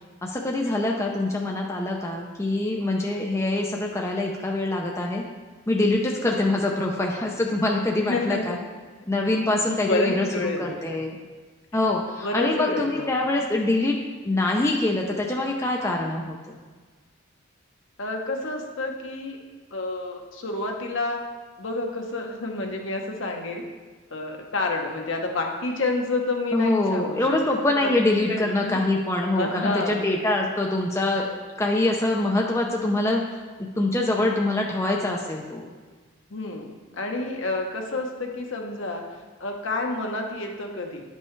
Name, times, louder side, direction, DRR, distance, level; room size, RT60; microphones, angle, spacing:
voice 1, 0.2-5.2 5.7-8.6 9.1-11.2 11.7-14.0 14.2-16.4 26.5-33.2 33.6-35.7, left 2 dB, 15° left, -1 dB, 0.5 m, -24 dB
voice 2, 8.0-8.6 9.8-10.8 12.2-13.2 18.0-19.4 19.7-21.2 21.6-23.6 24.1-27.3 27.8-27.9 28.3-28.8 29.4-30.0 36.3-39.0 39.4-41.0, left 2 dB, 65° left, 2 dB, 0.9 m, -29 dB
9.7 x 5.4 x 3.2 m, 1.4 s
head